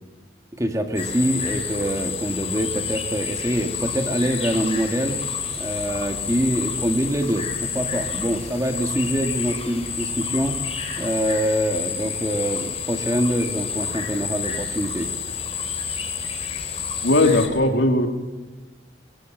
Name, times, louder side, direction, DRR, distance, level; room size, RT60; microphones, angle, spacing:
voice 1, 0.6-5.2 5.6-10.6 11.0-15.1, right 1 dB, 15° right, 5 dB, 1.7 m, -24 dB
sound 1, 0.9-17.5, left 6 dB, 30° left, 3.8 m, -29 dB
voice 2, 17.0-18.1, left 2 dB, 75° left, 4 dB, 2.7 m, -18 dB
23.0 x 23.0 x 7.8 m, 1.2 s
head